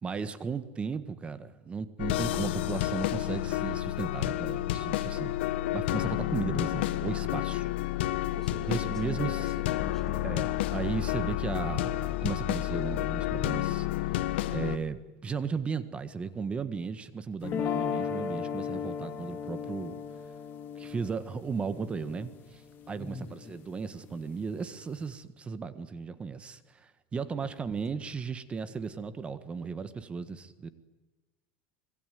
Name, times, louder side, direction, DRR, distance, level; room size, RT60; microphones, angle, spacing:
voice 1, 0.0-5.4 5.7-7.7 8.7-9.5 10.2-14.2 14.5-20.0 20.7-22.6 22.9-30.7, right 5 dB, 20° right, 13 dB, 1.6 m, -35 dB
sound 1, 2.0-14.8, left 14 dB, 85° left, 1.3 m, -30 dB
voice 2, 8.3-10.3 23.0-23.6 27.4-27.8, left 2 dB, 5° left, 11 dB, 1.4 m, -44 dB
sound 2, 17.4-23.5, left 7 dB, 35° left, 3.0 m, -36 dB
26.0 x 22.0 x 9.4 m, 1.2 s
supercardioid pair, 140°, 6 cm